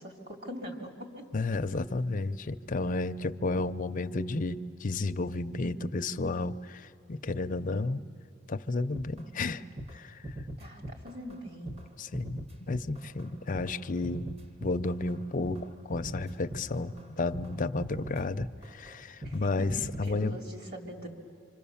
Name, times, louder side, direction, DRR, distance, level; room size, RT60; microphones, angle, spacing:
voice 1, 0.0-1.3 10.6-11.7 19.2-21.1, equal, 50° right, 2 dB, 3.1 m, -42 dB
voice 2, 1.3-8.0 8.5-9.6 9.9-10.2 12.0-14.3 14.6-20.3, left 3 dB, 40° left, 9 dB, 0.6 m, -32 dB
sound 1, 8.9-9.5 9.8-10.0 10.2-11.4 11.7-19.4 19.7-20.1, right 1 dB, 30° right, 1.1 m, -41 dB
26.0 x 26.0 x 7.1 m, 2.7 s
head